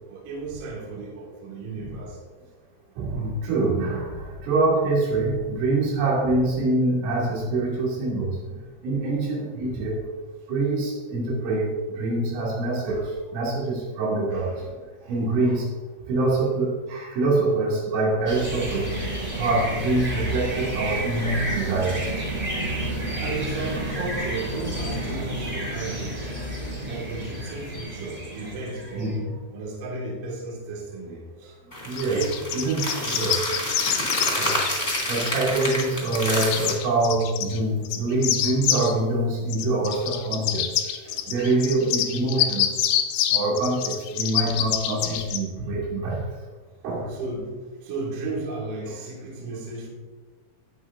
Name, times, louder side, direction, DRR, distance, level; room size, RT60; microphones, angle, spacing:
voice 1, 0.1-2.2 14.3-14.8 23.2-26.3 26.8-29.2 29.5-31.6 32.1-32.4 41.0-41.3 47.1-47.5 47.8-49.9, right 3 dB, 55° right, -3 dB, 3.0 m, -34 dB
voice 2, 3.0-8.6 8.8-10.0 10.5-14.6 15.0-15.7 16.1-18.9 19.3-22.2 22.5-22.6 23.6-23.8 28.9-29.2 31.8-32.2 32.5-33.4 34.4-34.6 35.1-40.8 41.3-42.8 43.3-46.2 46.8-47.1, right 2 dB, 85° right, -5 dB, 5.1 m, -25 dB
sound 1, 18.3-29.2, right 1 dB, 30° right, 1.1 m, -30 dB
sound 2, 31.7-36.7, left 1 dB, 15° left, 1.8 m, -28 dB
sound 3, 32.0-35.3 35.6-37.6 37.8-38.9 39.5-45.4, left 11 dB, 80° left, 3.1 m, -26 dB
18.5 x 6.2 x 2.7 m, 1.3 s
omnidirectional pair, 5.6 m